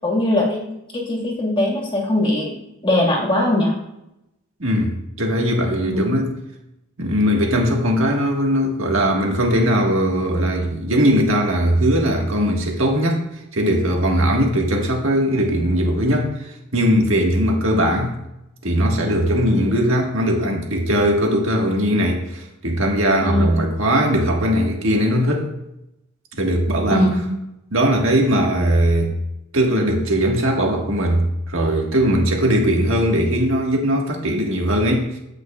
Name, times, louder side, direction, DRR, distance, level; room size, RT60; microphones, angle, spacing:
voice 1, 0.0-0.6 0.9-2.6 2.8-3.7 5.8-6.1 23.2-23.6 26.9-27.3, left 1 dB, 25° left, -2 dB, 1.8 m, -20 dB
voice 2, 4.6-6.3 7.0-13.2 13.5-18.2 18.6-25.5 26.4-27.1 27.7-29.1 29.5-35.2, equal, 70° right, 0 dB, 1.7 m, -19 dB
15.5 x 5.4 x 2.4 m, 0.87 s
head